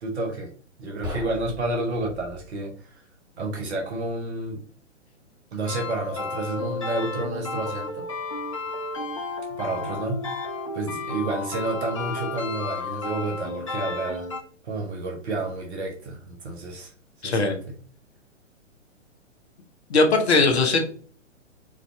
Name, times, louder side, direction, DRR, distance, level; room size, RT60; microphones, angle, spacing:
voice 1, 0.0-0.5 0.8-3.0 3.4-4.6 5.5-8.1 9.5-10.3 10.7-14.3 14.6-16.9 17.2-17.8 20.3-20.6, right 2 dB, 60° right, 0.9 m, -30 dB
sound 1, 1.0-2.5, left 1 dB, 10° right, 1.2 m, -38 dB
sound 2, 5.7-14.4, left 3 dB, 30° left, 0.3 m, -32 dB
voice 2, 17.2-17.6 19.9-20.8, left 3 dB, 55° left, 0.9 m, -19 dB
4.7 x 2.6 x 2.2 m
figure-of-eight pair, 120°, 38 cm